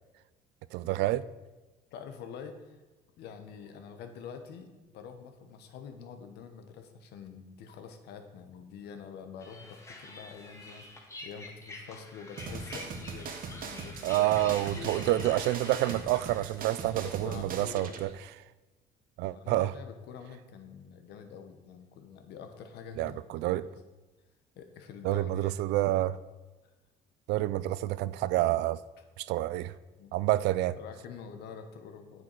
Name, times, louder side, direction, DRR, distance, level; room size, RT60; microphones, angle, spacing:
voice 1, 0.7-1.2 14.0-18.1 19.2-19.7 23.0-23.6 25.0-26.2 27.3-28.8 29.2-29.7 30.1-30.8, right 15 dB, 85° right, 17 dB, 0.4 m, -28 dB
voice 2, 1.9-2.8 3.2-15.2 16.8-18.0 19.3-23.2 23.5-23.7 24.5-25.5 30.0-30.1 30.8-32.2, left 6 dB, 80° left, 7 dB, 1.2 m, -46 dB
sound 1, 9.4-16.9, left 2 dB, 15° left, 1.5 m, -47 dB
sound 2, 12.4-18.0, right 5 dB, 55° right, 1.1 m, -41 dB
8.3 x 7.5 x 4.7 m, 1.2 s
cardioid pair, 110°, 17 cm